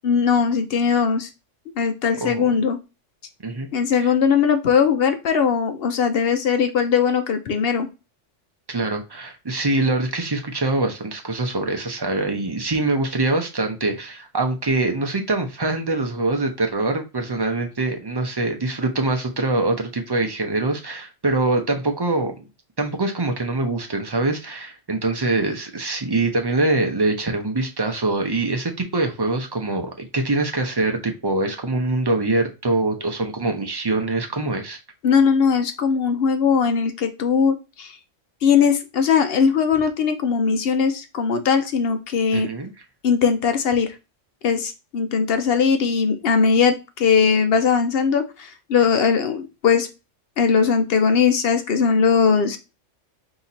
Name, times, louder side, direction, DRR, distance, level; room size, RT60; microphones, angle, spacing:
voice 1, 0.0-1.3 1.8-2.8 3.7-7.9 35.0-37.9 38.4-42.5 43.0-44.0 44.4-49.9 50.4-52.6, left 6 dB, 60° left, 0.7 m, -19 dB
voice 2, 8.7-22.5 22.8-34.8 42.3-42.7, right 2 dB, 25° right, 0.6 m, -24 dB
4.1 x 2.9 x 4.1 m
omnidirectional pair, 1.3 m